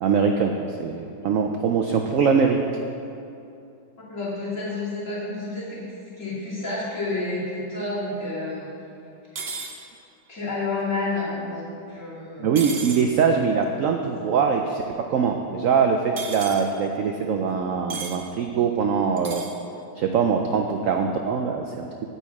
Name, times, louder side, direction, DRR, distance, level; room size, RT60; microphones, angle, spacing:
voice 1, 0.0-2.6 12.4-14.8 15.1-19.4 20.0-21.9, right 6 dB, 80° right, 4 dB, 0.7 m, -22 dB
voice 2, 4.1-8.7 10.3-12.5, left 2 dB, 40° left, -8 dB, 2.9 m, -30 dB
sound 1, 9.4-9.7 12.6-13.0 16.2-16.6 17.9-18.2 19.2-19.5, right 4 dB, 50° right, 0.8 m, -33 dB
8.6 x 8.3 x 4.8 m, 2.7 s
omnidirectional pair, 2.0 m